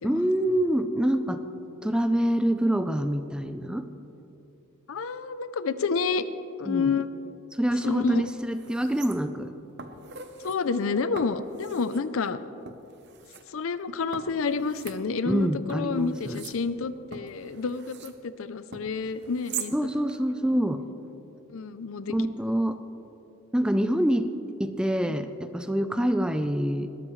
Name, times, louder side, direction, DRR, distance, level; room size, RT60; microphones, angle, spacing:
voice 1, 0.0-1.4 1.8-3.9 6.7-6.9 7.5-9.5 15.3-16.4 19.7-20.8 22.1-22.8 23.5-24.3 24.6-26.9, equal, 5° right, 9 dB, 0.4 m, -26 dB
voice 2, 4.9-6.2 6.6-7.1 7.8-8.2 10.4-12.4 13.5-19.9 21.5-22.2 25.1-25.2, left 4 dB, 75° left, 13 dB, 0.5 m, -29 dB
sound 1, 7.7-7.8 8.2-9.5 9.8-10.6 11.2-12.0 12.7-13.4 14.1-15.4 15.7-18.2 18.7-19.7 20.1-20.2, right 7 dB, 55° right, 0.8 m, -42 dB
20.0 x 13.0 x 3.2 m, 2.9 s
head